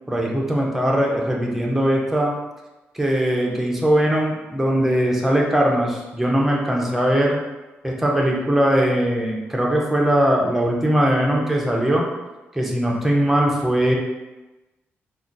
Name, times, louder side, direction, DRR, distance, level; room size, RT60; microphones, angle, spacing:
voice 1, 0.1-2.4 2.9-7.4 7.8-12.1 12.5-13.9, right 1 dB, 5° right, -2 dB, 0.4 m, -20 dB
2.3 x 2.2 x 3.7 m, 1.1 s
wide cardioid pair, 145°, 4 cm